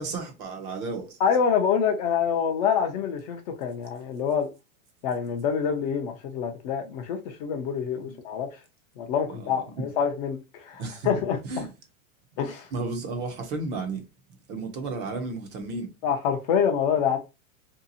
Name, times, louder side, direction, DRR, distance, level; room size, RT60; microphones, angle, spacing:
voice 1, 0.0-1.2 8.0-8.1 9.3-9.5 10.8-11.1 11.4-11.7 12.7-14.0 14.5-15.9, right 3 dB, 25° right, 0.5 m, -33 dB
voice 2, 1.2-4.5 5.0-8.5 9.0-11.7 12.4-12.7 16.0-17.2, left 7 dB, 35° left, 0.4 m, -26 dB
2.7 x 2.3 x 2.6 m
hypercardioid pair, 130°, 42 cm